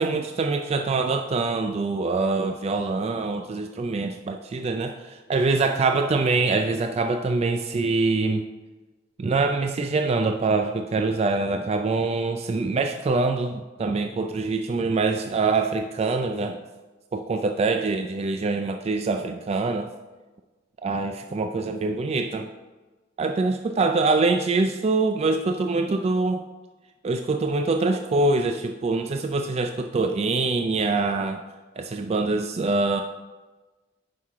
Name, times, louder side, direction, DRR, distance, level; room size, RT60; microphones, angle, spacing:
voice 1, 0.0-8.4 9.2-16.6 17.1-19.9 20.8-22.5 23.2-26.4 27.0-31.4 31.8-33.0, right 3 dB, 35° right, 6 dB, 0.3 m, -24 dB
9.4 x 5.7 x 3.6 m, 1.2 s
head